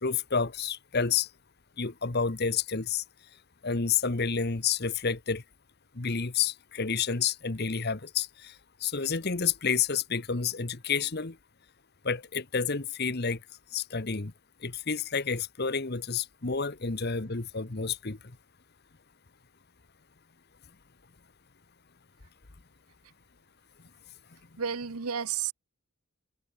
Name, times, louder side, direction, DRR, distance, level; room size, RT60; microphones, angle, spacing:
voice 1, 0.0-1.3 1.8-3.0 3.6-5.4 5.9-8.5 8.8-11.4 12.0-13.4 13.7-14.3 14.6-18.2, left 6 dB, 45° left, 1.1 m, -29 dB
voice 2, 24.6-25.5, right 7 dB, 85° right, 1.0 m, -31 dB
head